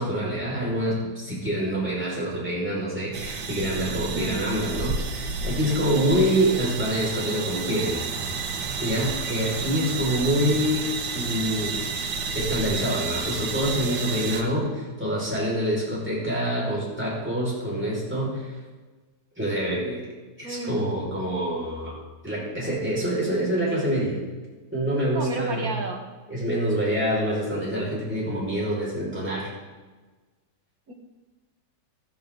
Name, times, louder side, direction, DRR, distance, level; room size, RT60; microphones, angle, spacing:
voice 1, 0.0-8.0 8.8-11.8 12.3-18.6 19.4-20.0 20.4-21.9 22.2-24.2 24.7-25.7 26.3-29.5, equal, 5° right, -6 dB, 5.3 m, -26 dB
sound 1, 3.1-14.4, right 5 dB, 85° right, 1.8 m, -31 dB
voice 2, 5.5-5.9 20.4-20.9 25.0-26.1 30.9-31.0, right 2 dB, 55° right, 2 dB, 2.1 m, -33 dB
15.0 x 13.5 x 3.9 m, 1.3 s
omnidirectional pair, 1.9 m